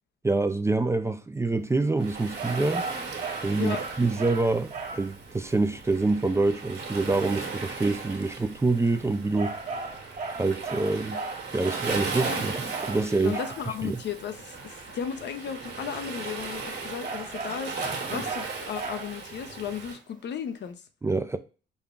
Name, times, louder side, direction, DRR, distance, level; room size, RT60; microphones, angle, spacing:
voice 1, 0.2-2.9 3.4-9.6 10.4-11.2 11.5-13.4 13.8-14.0 21.0-21.4, right 3 dB, 15° right, 0.4 m, -26 dB
Waves surf, 2.0-20.0, right 4 dB, 60° right, 1.4 m, -37 dB
sound 1, 2.4-5.1 9.3-13.7 17.0-19.3, right 3 dB, 40° right, 0.9 m, -36 dB
voice 2, 13.2-20.8, left 8 dB, 60° left, 0.6 m, -35 dB
5.4 x 2.3 x 3.6 m
cardioid pair, 90°, 20 cm